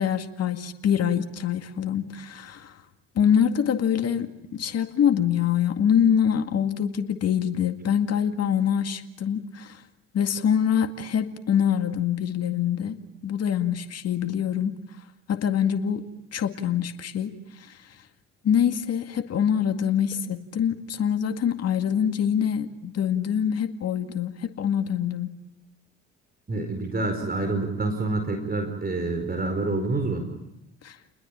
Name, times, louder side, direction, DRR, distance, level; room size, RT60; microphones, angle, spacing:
voice 1, 0.0-2.8 3.2-9.8 10.1-14.7 15.3-16.0 16.3-17.8 18.4-25.4 30.8-31.0, left 8 dB, 50° left, 7 dB, 2.0 m, -25 dB
voice 2, 26.5-30.3, right 2 dB, 30° right, 5 dB, 4.7 m, -27 dB
29.5 x 21.0 x 8.8 m, 0.87 s
hypercardioid pair, 50°, 32 cm